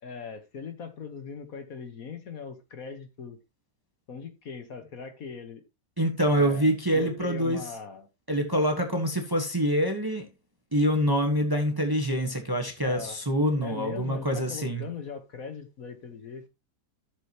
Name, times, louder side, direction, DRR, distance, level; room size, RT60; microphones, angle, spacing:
voice 1, 0.0-3.4 4.1-5.6 6.3-6.7 6.9-8.1 12.8-13.2 13.6-16.5, left 5 dB, 55° left, 1.6 m, -40 dB
voice 2, 6.0-7.7 8.3-10.3 10.7-14.9, equal, 15° right, 1.2 m, -25 dB
12.5 x 6.9 x 2.9 m
omnidirectional pair, 1.8 m